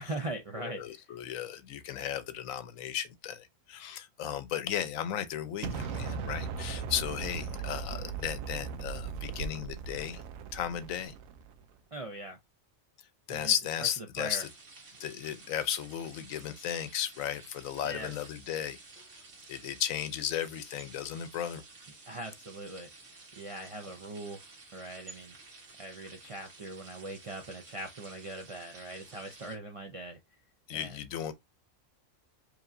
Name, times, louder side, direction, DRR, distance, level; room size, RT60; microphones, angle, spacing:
voice 1, 0.0-1.0 11.9-12.4 13.3-13.5 14.2-14.4 17.8-18.1 22.1-22.9 23.4-24.4 24.7-25.3 25.8-30.2 30.7-31.0, right 1 dB, 50° right, 0.4 m, -41 dB
voice 2, 0.6-10.2 10.5-11.1 13.3-14.5 15.0-18.8 19.5-21.6 30.7-31.3, left 10 dB, 85° left, 1.1 m, -35 dB
Explosion, 5.6-11.6, right 6 dB, 85° right, 1.0 m, -38 dB
sound 1, 14.3-29.6, right 3 dB, 70° right, 1.7 m, -53 dB
4.8 x 2.9 x 2.6 m
omnidirectional pair, 1.4 m